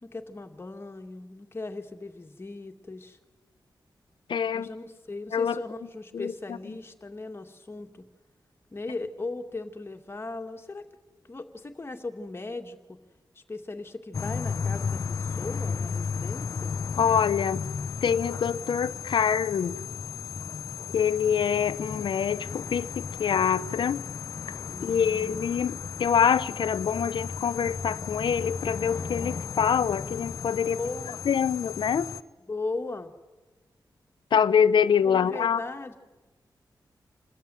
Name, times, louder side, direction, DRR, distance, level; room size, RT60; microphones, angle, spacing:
voice 1, 0.0-3.2 4.5-8.0 8.7-10.8 11.3-13.0 13.4-16.8 24.7-25.6 30.8-31.3 32.5-33.1 35.0-36.0, left 3 dB, 30° left, 2.2 m, -38 dB
voice 2, 4.3-4.7 5.3-5.6 6.1-6.3 17.0-17.6 18.0-19.7 20.9-24.0 24.8-30.8 31.3-32.1 34.3-35.6, left 7 dB, 90° left, 0.8 m, -25 dB
sound 1, 14.1-32.2, left 5 dB, 45° left, 0.8 m, -34 dB
28.0 x 20.5 x 9.3 m
wide cardioid pair, 115°, 8 cm